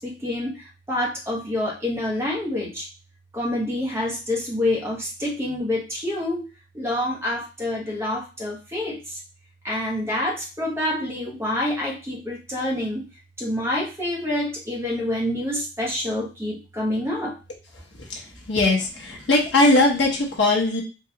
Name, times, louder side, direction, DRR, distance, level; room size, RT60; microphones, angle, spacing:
voice 1, 0.0-2.9 3.3-6.4 6.7-9.2 9.6-13.1 13.4-17.4, left 1 dB, 15° right, -3 dB, 1.0 m, -27 dB
voice 2, 18.5-20.8, left 2 dB, 85° left, -1 dB, 0.8 m, -19 dB
3.8 x 2.4 x 2.9 m, 0.32 s
head